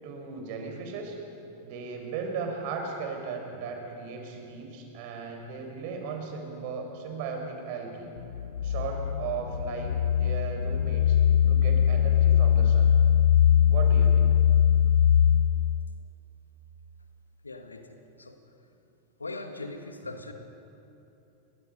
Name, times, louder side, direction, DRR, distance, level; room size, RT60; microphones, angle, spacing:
voice 1, 0.0-1.2 1.6-8.1 8.6-11.2 11.5-13.0 13.7-14.3, right 5 dB, 45° right, 3 dB, 4.7 m, -36 dB
sound 1, 8.2-16.0, left 9 dB, 65° left, 0.5 m, -22 dB
voice 2, 17.4-18.4 19.2-20.3, left 2 dB, 80° left, 6 dB, 2.0 m, -40 dB
29.0 x 23.0 x 5.4 m, 2.9 s
figure-of-eight pair, 90°, 0 cm